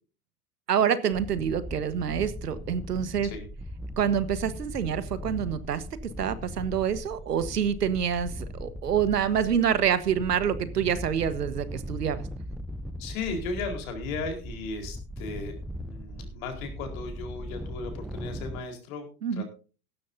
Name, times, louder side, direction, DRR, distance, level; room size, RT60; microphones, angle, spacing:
voice 1, 0.7-3.3 4.0-12.2 19.2-19.4, right 8 dB, 85° right, 14 dB, 1.4 m, -27 dB
sound 1, 1.1-18.6, equal, ahead, 0.6 m, -39 dB
voice 2, 13.0-19.0 19.3-19.4, left 4 dB, 60° left, 4 dB, 4.4 m, -36 dB
16.0 x 13.0 x 2.7 m, 0.35 s
hypercardioid pair, 95°, 46 cm